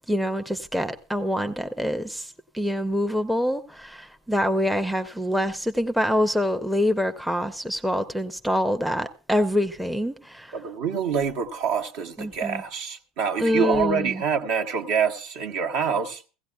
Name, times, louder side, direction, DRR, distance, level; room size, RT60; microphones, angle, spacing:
voice 1, 0.1-2.3 2.5-10.5 12.2-12.6 13.4-14.2, equal, ahead, 0.6 m, -25 dB
voice 2, 10.5-16.2, right 6 dB, 55° right, 1.0 m, -26 dB
16.0 x 16.0 x 2.3 m
figure-of-eight pair, 75°, 0 cm